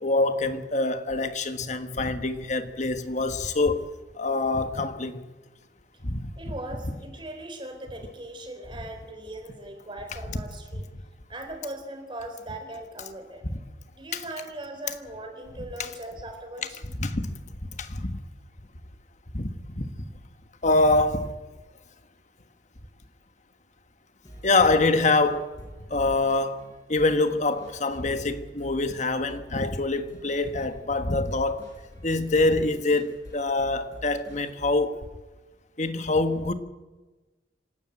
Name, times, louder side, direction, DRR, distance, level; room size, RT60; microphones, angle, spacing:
voice 1, 0.0-5.2 6.0-6.3 10.3-10.4 10.7-10.8 14.1-14.2 15.8-15.9 16.8-17.3 17.6-18.2 19.3-19.5 19.8-19.9 20.6-21.3 24.4-25.5 25.9-31.7 32.0-35.0 35.8-36.5, left 2 dB, 40° left, 1.4 m, -25 dB
voice 2, 6.4-10.9 11.3-13.5 14.0-16.8, right 1 dB, 25° right, 3.8 m, -39 dB
sound 1, 24.2-34.9, equal, 20° left, 7.3 m, -48 dB
26.5 x 12.0 x 9.1 m
head